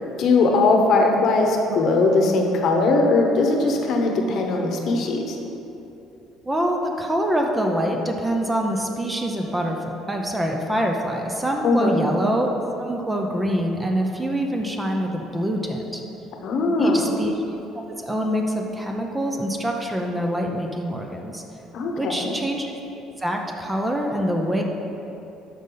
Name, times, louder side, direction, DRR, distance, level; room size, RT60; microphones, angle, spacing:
voice 1, 0.2-5.4 11.6-12.0 16.4-17.1 21.7-22.3, left 3 dB, 50° left, 2 dB, 1.0 m, -20 dB
voice 2, 6.4-12.5 12.9-16.0 16.8-17.3 18.0-21.4 22.0-22.7 23.2-24.6, equal, 10° right, 2 dB, 0.7 m, -25 dB
13.0 x 5.3 x 4.0 m, 2.9 s
cardioid pair, 140°, 0 cm